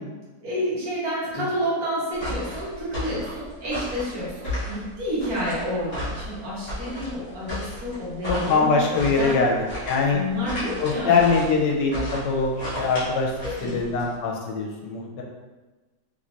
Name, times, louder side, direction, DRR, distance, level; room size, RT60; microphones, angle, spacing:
voice 1, 0.4-9.4 10.1-11.3 13.4-13.9, equal, 55° right, -8 dB, 1.7 m, -30 dB
sound 1, 2.1-14.1, equal, 15° left, 1.2 m, -34 dB
voice 2, 8.3-9.6 9.8-10.2 10.8-12.5 12.8-13.3 13.6-15.2, left 4 dB, 90° left, 0 dB, 1.3 m, -22 dB
3.4 x 3.1 x 2.5 m, 1.2 s
omnidirectional pair, 1.9 m